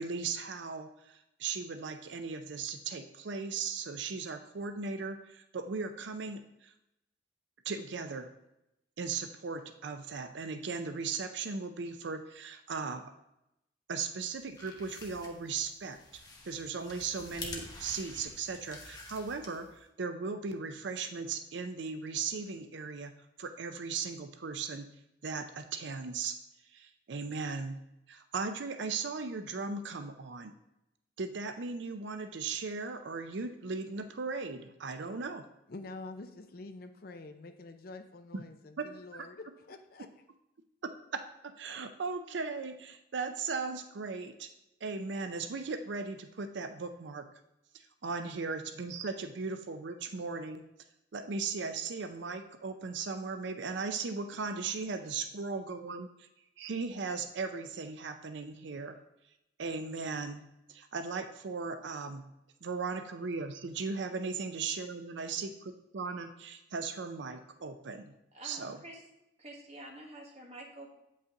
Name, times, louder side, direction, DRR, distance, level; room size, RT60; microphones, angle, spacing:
voice 1, 0.0-6.7 7.7-8.3 9.0-13.1 13.9-16.0 16.4-24.9 25.2-26.4 26.7-27.8 28.1-30.6 31.2-35.5 38.3-38.4 38.8-38.9 39.1-39.3 40.8-44.5 44.8-47.3 47.7-50.6 51.1-56.3 56.6-59.0 59.6-60.4 60.7-62.3 62.6-65.5 65.9-68.1 68.4-68.8, right 4 dB, 70° right, 8 dB, 0.5 m, -37 dB
sound 1, 14.3-19.8, left 2 dB, 20° left, 0.9 m, -48 dB
voice 2, 35.7-40.1, left 2 dB, 50° left, 7 dB, 0.6 m, -47 dB
voice 3, 68.3-69.0 69.4-70.9, right 1 dB, 35° right, -1 dB, 1.5 m, -48 dB
8.2 x 5.5 x 3.7 m, 0.85 s
head